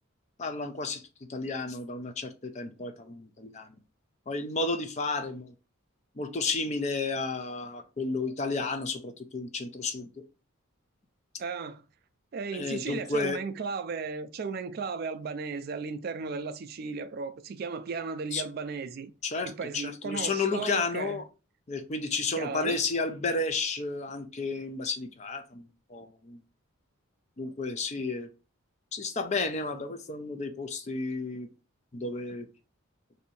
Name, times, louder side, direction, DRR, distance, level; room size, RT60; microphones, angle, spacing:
voice 1, 0.4-1.0 1.3-3.8 4.3-5.5 6.2-10.1 12.5-13.4 18.3-18.4 19.2-21.2 21.7-26.4 27.4-28.3 28.9-31.5 31.9-32.5, left 3 dB, 30° left, 0.4 m, -32 dB
voice 2, 11.4-11.8 12.3-19.1 19.5-21.2 22.4-22.8, right 4 dB, 45° right, 0.3 m, -35 dB
2.7 x 2.6 x 4.1 m
head